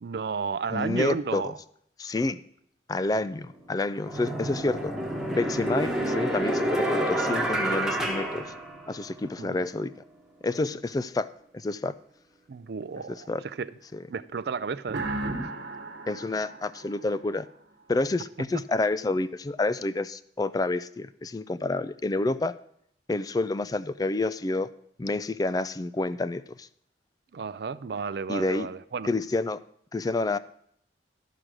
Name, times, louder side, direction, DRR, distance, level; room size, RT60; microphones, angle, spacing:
voice 1, 0.0-1.6 9.4-9.7 12.5-13.7 14.1-15.0 15.4-15.5 27.3-29.1, right 5 dB, 60° right, 15 dB, 0.4 m, -32 dB
voice 2, 0.7-1.5 2.0-2.4 2.9-4.9 5.3-8.5 8.9-9.9 10.4-11.3 11.5-11.9 13.1-13.4 13.9-14.0 16.1-17.5 17.9-22.5 23.1-24.7 25.0-26.7 28.3-28.7 29.0-29.6 29.9-30.4, left 2 dB, 20° left, 15 dB, 0.3 m, -28 dB
sound 1, 3.3-3.4 4.0-9.2, right 1 dB, 5° right, 1.2 m, -28 dB
sound 2, 14.9-17.6, right 2 dB, 75° right, 1.2 m, -35 dB
12.5 x 5.0 x 6.1 m, 0.71 s
head